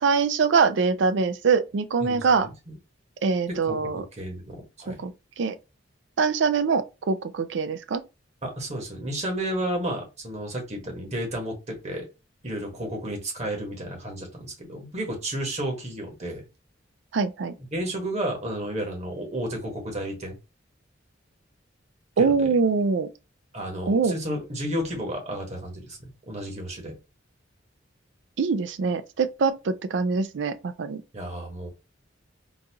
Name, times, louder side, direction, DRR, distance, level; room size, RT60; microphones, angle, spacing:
voice 1, 0.0-2.5 3.2-4.0 4.9-5.6 6.2-8.0 17.1-17.6 22.2-23.1 23.9-24.1 28.4-31.0, right 5 dB, 65° right, 0.4 m, -23 dB
voice 2, 2.0-2.7 3.5-5.0 8.4-12.1 12.4-16.4 17.7-20.4 22.2-22.5 23.5-26.9 31.1-31.7, right 1 dB, 35° right, 1.3 m, -32 dB
3.9 x 2.4 x 2.8 m
head